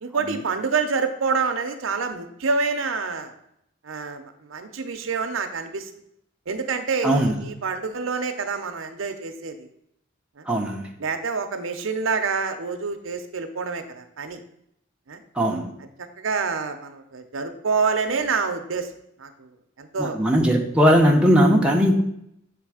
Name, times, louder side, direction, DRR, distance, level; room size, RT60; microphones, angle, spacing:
voice 1, 0.0-3.3 3.8-5.9 6.5-9.7 10.4-10.5 11.0-14.4 15.1-15.2 16.0-18.9 19.2-19.5 19.8-20.2, right 4 dB, 85° right, 7 dB, 0.6 m, -27 dB
voice 2, 7.0-7.4 10.5-10.8 15.3-15.7 20.0-22.0, equal, 5° right, 0 dB, 0.7 m, -19 dB
7.1 x 3.4 x 4.8 m, 0.75 s
head